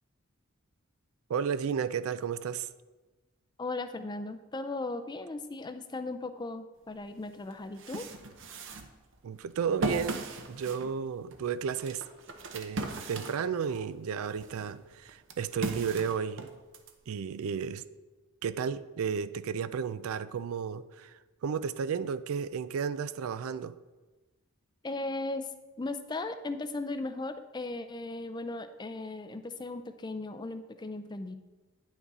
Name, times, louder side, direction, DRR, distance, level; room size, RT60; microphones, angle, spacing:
voice 1, 1.3-2.7 9.2-12.0 12.5-16.5 17.1-17.8 18.4-23.7, right 6 dB, 80° right, 0.4 m, -33 dB
voice 2, 3.6-8.1 24.8-25.5 25.8-31.4, left 2 dB, 20° left, 0.4 m, -37 dB
sound 1, 7.0-7.1 7.5-13.9 14.3-16.9, right 2 dB, 60° right, 0.7 m, -38 dB
9.6 x 6.0 x 4.1 m
head